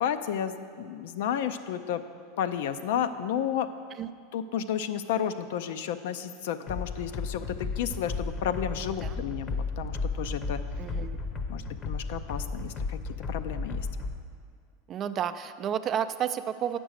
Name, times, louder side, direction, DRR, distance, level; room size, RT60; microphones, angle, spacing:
voice 1, 0.0-2.0 2.4-3.7 4.3-10.6 11.5-13.0 13.3-13.9, left 9 dB, 75° left, 10 dB, 0.5 m, -32 dB
sound 1, 6.7-14.2, left 3 dB, 30° left, 0.8 m, -34 dB
voice 2, 10.8-11.2 14.9-16.8, right 9 dB, 35° right, 11 dB, 0.4 m, -31 dB
8.0 x 6.0 x 6.4 m, 2.2 s
supercardioid pair, 115°, 0 cm